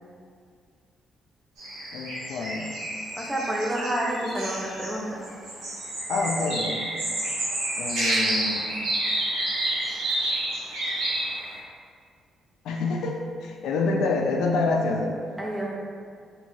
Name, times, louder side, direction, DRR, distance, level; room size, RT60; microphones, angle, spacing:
sound 1, 1.6-5.0 5.2-11.6, right 1 dB, 80° right, 0.8 m, -29 dB
voice 1, 1.9-2.7 6.1-6.8 7.8-8.8 12.6-15.2, left 3 dB, 90° left, 1 dB, 0.3 m, -27 dB
voice 2, 3.2-5.2 15.4-15.8, right 1 dB, 10° right, -3 dB, 0.5 m, -29 dB
3.1 x 2.6 x 2.6 m, 2.2 s
cardioid pair, 120°, 0 cm